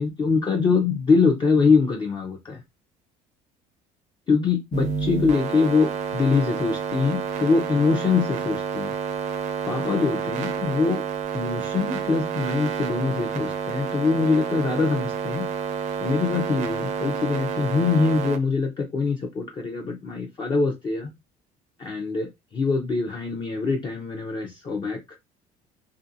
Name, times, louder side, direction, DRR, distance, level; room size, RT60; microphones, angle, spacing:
voice 1, 0.0-2.6 4.3-8.9 9.7-11.0 11.3-15.5 16.0-21.1 21.8-25.2, left 4 dB, 30° left, 0.5 m, -23 dB
sound 1, 4.7-18.4, right 7 dB, 50° right, 0.5 m, -29 dB
2.8 x 2.5 x 2.6 m
cardioid pair, 140°, 16 cm